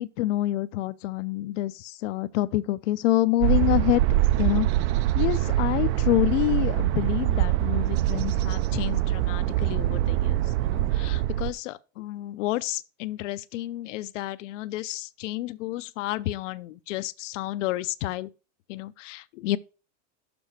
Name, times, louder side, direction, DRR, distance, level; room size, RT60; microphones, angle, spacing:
voice 1, 0.0-4.0 4.4-4.7 5.1-18.3 18.7-19.6, left 16 dB, 80° left, 0.6 m, -28 dB
sound 1, 3.4-11.5, right 14 dB, 65° right, 0.6 m, -24 dB
7.0 x 5.4 x 4.2 m
supercardioid pair, 140°, 37 cm